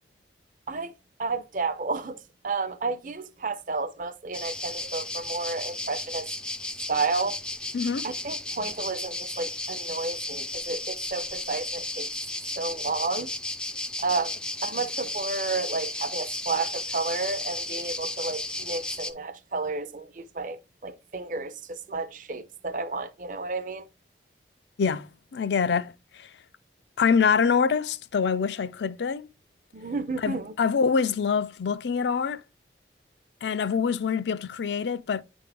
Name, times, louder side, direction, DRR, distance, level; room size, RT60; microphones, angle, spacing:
voice 1, 1.2-6.3 6.9-7.4 8.0-12.1 12.6-13.3 14.0-23.8 29.7-30.5, right 3 dB, 45° right, 0.5 m, -31 dB
sound 1, 4.3-19.1, left 2 dB, 5° left, 0.3 m, -34 dB
voice 2, 7.7-8.1 24.8-26.3 27.0-29.3 30.2-32.4 33.4-35.2, left 6 dB, 80° left, 0.4 m, -25 dB
9.1 x 3.5 x 3.4 m
head